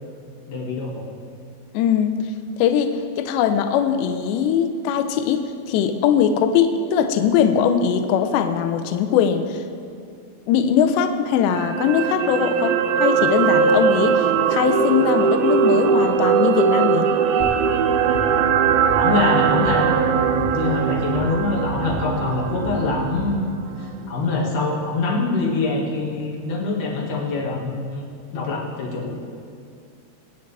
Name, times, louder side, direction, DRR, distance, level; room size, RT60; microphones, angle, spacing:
voice 1, 0.5-1.1 18.9-23.5 23.8-28.1 28.3-29.1, left 3 dB, 55° left, -3 dB, 2.5 m, -24 dB
voice 2, 1.7-2.3 2.6-9.6 10.5-17.1, left 8 dB, 85° left, 7 dB, 2.5 m, -21 dB
sound 1, 11.5-23.8 24.2-24.3, right 7 dB, 90° right, 2.6 m, -20 dB
sound 2, 17.4-24.0, equal, 70° left, 3.4 m, -33 dB
24.0 x 9.6 x 3.4 m, 2.3 s
omnidirectional pair, 5.9 m